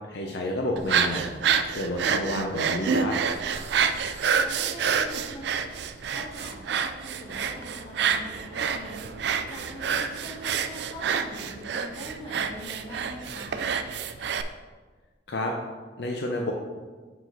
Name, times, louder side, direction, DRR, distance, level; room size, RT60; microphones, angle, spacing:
voice 1, 0.1-1.3 1.7-3.2 15.3-15.5 16.0-16.5, left 1 dB, 70° left, 1 dB, 0.6 m, -29 dB
sound 1, 0.8-14.4, right 7 dB, 70° right, 0.4 m, -28 dB
voice 2, 4.3-5.5 6.0-13.6, equal, 35° left, -5 dB, 1.8 m, -43 dB
6.0 x 4.8 x 3.9 m, 1.4 s
head